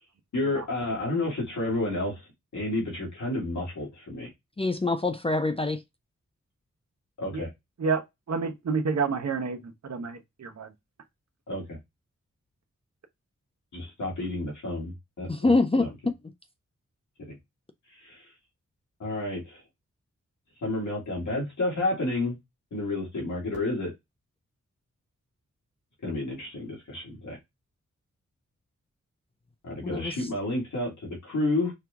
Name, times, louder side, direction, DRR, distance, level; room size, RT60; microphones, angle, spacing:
voice 1, 0.3-2.2 2.5-4.3 7.2-7.5 11.5-11.8 13.7-15.5 15.8-15.9 17.2-17.4 17.9-18.2 19.0-19.6 20.6-22.4 22.7-23.9 26.0-27.4 29.6-31.7, left 2 dB, 90° left, 2.2 m, -30 dB
voice 2, 4.6-5.8 15.3-15.9 29.8-30.1, left 3 dB, 20° left, 0.5 m, -24 dB
voice 3, 7.8-10.7, right 5 dB, 65° right, 1.0 m, -29 dB
4.7 x 2.3 x 3.5 m
cardioid pair, 55°, 29 cm